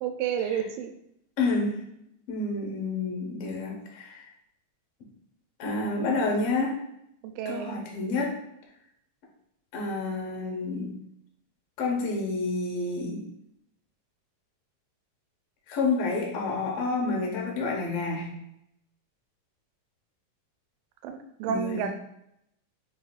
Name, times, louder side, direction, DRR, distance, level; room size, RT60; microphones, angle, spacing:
voice 1, 0.0-0.9 7.2-7.8 21.0-22.0, right 8 dB, 85° right, 6 dB, 2.2 m, -30 dB
voice 2, 1.4-1.8 2.3-4.3 5.6-6.8 7.4-8.4 9.7-10.9 11.8-13.3 15.7-18.3 21.5-21.9, left 3 dB, 65° left, -2 dB, 1.5 m, -29 dB
7.1 x 2.7 x 2.4 m, 0.77 s
omnidirectional pair, 3.9 m